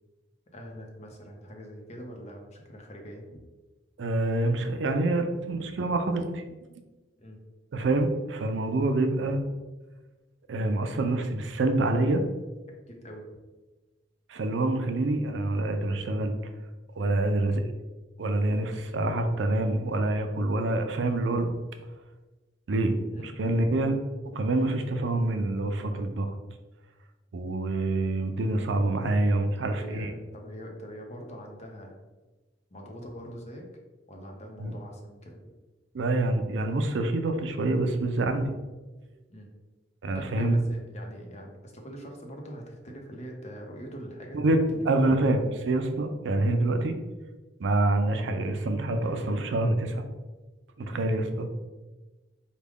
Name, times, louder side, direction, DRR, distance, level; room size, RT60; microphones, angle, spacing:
voice 1, 0.5-3.4 7.2-7.4 12.9-13.3 17.0-17.1 23.1-23.3 29.6-32.0 32.7-33.7 34.1-35.4 39.3-39.5 40.1-45.1 50.8-51.0, equal, 35° left, 1 dB, 0.7 m, -43 dB
voice 2, 4.0-6.4 7.7-9.4 10.5-12.2 14.3-16.3 17.0-17.6 18.2-21.5 22.7-24.0 24.3-26.3 27.3-30.1 34.6-34.7 35.9-38.5 40.0-40.6 44.3-46.9 47.6-50.0 50.8-51.5, right 2 dB, 75° right, 6 dB, 0.4 m, -26 dB
4.8 x 2.2 x 3.5 m, 1.2 s
head